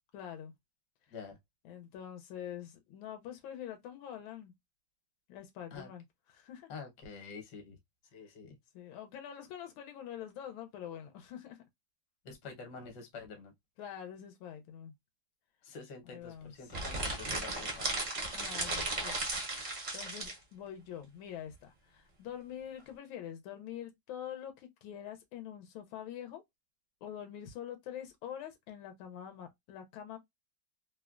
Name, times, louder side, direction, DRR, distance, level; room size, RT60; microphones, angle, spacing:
voice 1, 0.1-0.5 1.6-4.5 5.3-6.0 6.3-6.7 8.7-11.6 13.8-14.9 16.1-16.7 18.3-26.4 27.0-30.2, left 9 dB, 90° left, 1.4 m, -45 dB
voice 2, 6.7-7.8 8.1-8.6 12.2-13.5 15.6-18.0, left 4 dB, 65° left, 1.4 m, -47 dB
sound 1, 16.7-20.4, right 2 dB, 70° right, 0.4 m, -35 dB
3.3 x 2.1 x 2.3 m
omnidirectional pair, 2.1 m